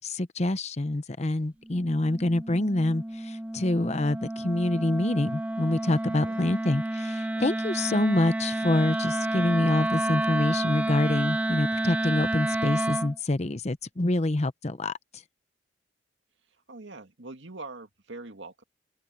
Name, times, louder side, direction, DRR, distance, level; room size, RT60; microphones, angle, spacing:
voice 1, 0.0-14.9, left 2 dB, 35° left, 0.8 m, -26 dB
Wind instrument woodwind instrument, 1.6-13.2, right 1 dB, 10° right, 0.3 m, -30 dB
voice 2, 6.1-6.5 7.3-7.5 16.7-18.6, right 2 dB, 75° right, 2.1 m, -43 dB
open air
head